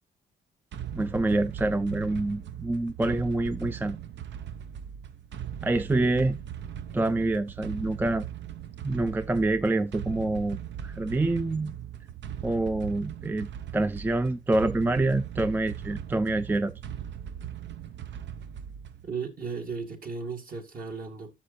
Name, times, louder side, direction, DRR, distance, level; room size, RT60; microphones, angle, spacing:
sound 1, 0.7-19.1, right 9 dB, 65° right, 0.7 m, -39 dB
voice 1, 0.9-4.0 5.6-6.4 6.9-8.3 8.8-11.7 12.4-16.7, right 2 dB, 10° right, 0.4 m, -26 dB
voice 2, 19.0-21.3, right 5 dB, 45° right, 2.2 m, -35 dB
13.0 x 6.4 x 2.7 m
cardioid pair, 90°, 20 cm